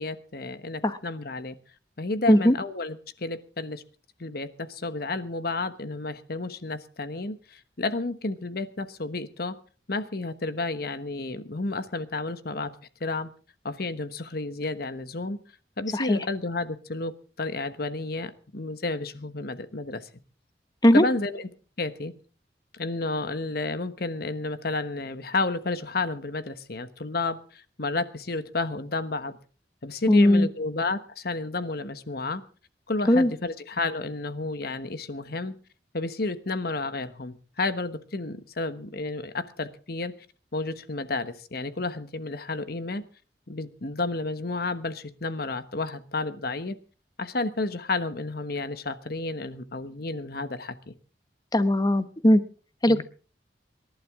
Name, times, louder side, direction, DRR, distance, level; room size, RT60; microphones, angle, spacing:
voice 1, 0.0-1.5 2.0-3.8 4.2-9.6 9.9-12.7 13.0-13.3 13.6-15.4 15.8-20.1 20.9-21.5 21.8-22.1 22.7-29.4 29.8-32.4 32.9-35.6 35.9-40.1 40.5-43.0 43.5-46.8 47.2-51.0 52.9-53.0, left 3 dB, 60° left, 11 dB, 1.2 m, -31 dB
voice 2, 15.9-16.2 20.8-21.0 30.1-30.5 33.1-33.3 51.5-52.4 52.8-53.0, left 1 dB, 25° left, 11 dB, 1.0 m, -19 dB
26.0 x 11.5 x 3.7 m, 0.38 s
head